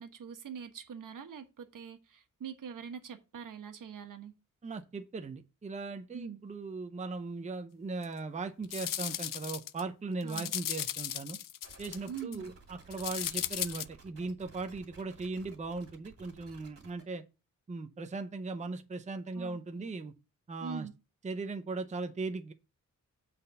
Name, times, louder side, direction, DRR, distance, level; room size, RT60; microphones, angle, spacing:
voice 1, 0.0-4.3 6.1-6.4 10.2-10.5 12.1-12.5 19.3-19.9 20.6-20.9, right 7 dB, 80° right, 1.3 m, -44 dB
voice 2, 4.6-11.4 11.8-17.2 17.7-20.1 20.5-20.9 21.2-22.5, right 3 dB, 25° right, 0.6 m, -38 dB
sound 1, 8.0-8.1 8.6-9.8 10.2-12.4 12.9-13.8, left 12 dB, 90° left, 0.5 m, -36 dB
sound 2, 11.6-17.0, right 3 dB, 50° right, 2.5 m, -55 dB
7.8 x 4.2 x 6.5 m
wide cardioid pair, 165°, 32 cm